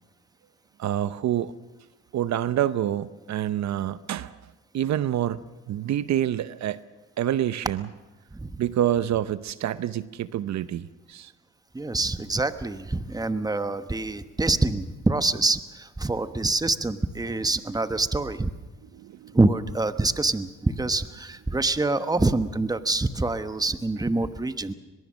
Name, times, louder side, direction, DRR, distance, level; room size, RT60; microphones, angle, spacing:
voice 1, 0.8-1.5 2.1-4.4 4.7-5.4 5.7-6.8 7.2-7.9 8.6-11.3 18.9-19.4, right 11 dB, 65° right, 15 dB, 0.7 m, -27 dB
voice 2, 11.7-18.5 19.3-24.7, right 2 dB, 10° right, 11 dB, 1.1 m, -25 dB
23.0 x 21.5 x 6.3 m, 1.2 s
cardioid pair, 90°, 30 cm